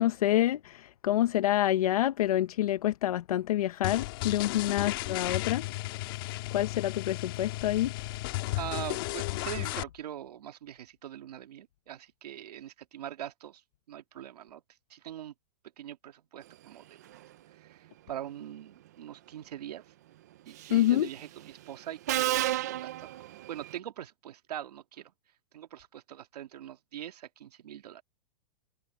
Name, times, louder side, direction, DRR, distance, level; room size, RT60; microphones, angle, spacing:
voice 1, 0.0-5.7 6.5-8.2 20.7-21.1, left 13 dB, 60° left, 0.8 m, -27 dB
sound 1, 3.8-9.8, left 19 dB, 35° left, 1.6 m, -34 dB
voice 2, 8.4-13.6 13.9-14.6 14.9-15.3 15.8-17.2 17.5-19.8 20.4-23.1 23.5-25.1 25.5-28.0, right 11 dB, 70° right, 1.9 m, -42 dB
Subway metro underground, 20.6-20.9 22.1-23.8, right 14 dB, 25° right, 0.3 m, -31 dB
supercardioid pair, 175°, 21 cm